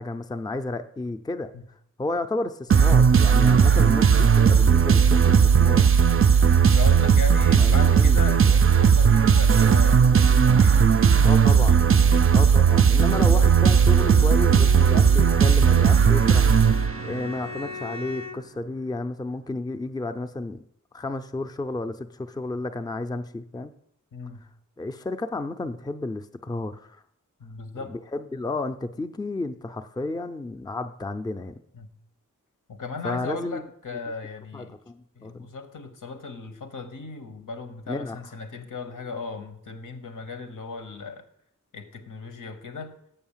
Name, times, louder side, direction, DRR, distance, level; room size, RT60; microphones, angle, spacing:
voice 1, 0.0-1.5 2.0-5.9 7.6-8.6 11.2-11.8 12.3-20.6 20.9-23.7 24.8-27.0 27.9-31.6 33.0-33.6 34.5-35.5 37.9-38.2, left 2 dB, 15° left, 8 dB, 0.4 m, -32 dB
sound 1, 2.7-17.3, right 6 dB, 45° right, 0.4 m, -17 dB
voice 2, 6.4-12.3 13.1-13.5 24.1-24.5 27.4-28.0 31.7-31.9 32.7-34.8 35.2-41.3 41.7-42.9, left 4 dB, 85° left, 7 dB, 1.1 m, -37 dB
Bowed string instrument, 13.7-18.6, left 5 dB, 60° left, 0.7 m, -39 dB
6.9 x 5.6 x 7.3 m, 0.71 s
wide cardioid pair, 80°, 31 cm